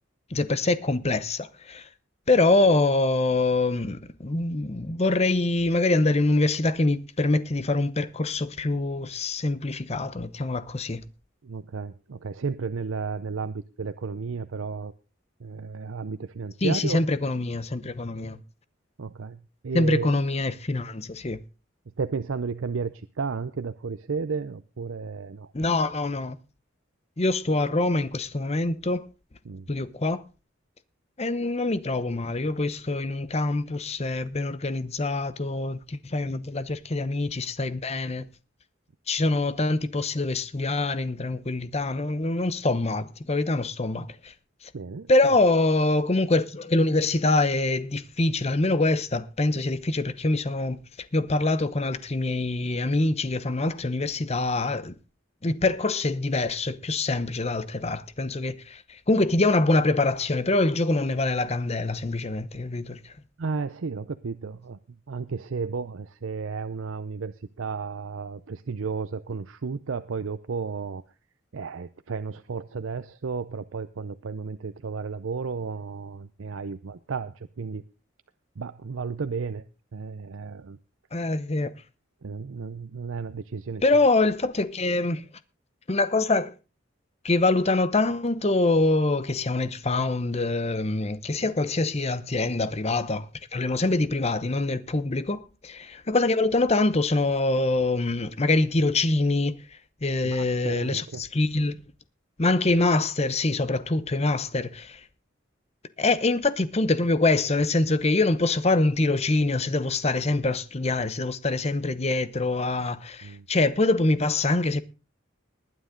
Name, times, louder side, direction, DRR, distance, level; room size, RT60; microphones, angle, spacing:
voice 1, 0.3-1.9 2.3-11.0 16.6-18.4 19.7-21.4 25.5-26.4 27.2-29.1 29.7-30.2 31.2-38.3 39.1-44.3 44.6-44.7 45.1-50.8 51.1-55.0 55.4-63.1 81.1-81.7 83.8-85.2 85.9-86.5 87.2-99.6 100.0-101.8 102.4-105.0 106.0-114.8, left 2 dB, 35° left, 0.8 m, -24 dB
voice 2, 11.4-14.9 15.4-17.0 19.0-20.1 22.0-25.5 29.4-29.7 44.7-45.1 63.4-64.8 65.1-71.0 71.5-77.8 78.6-79.6 79.9-80.8 82.2-83.8 91.4-91.5 100.2-101.2 113.2-113.5, right 5 dB, 90° right, 0.6 m, -33 dB
19.5 x 9.5 x 3.8 m
head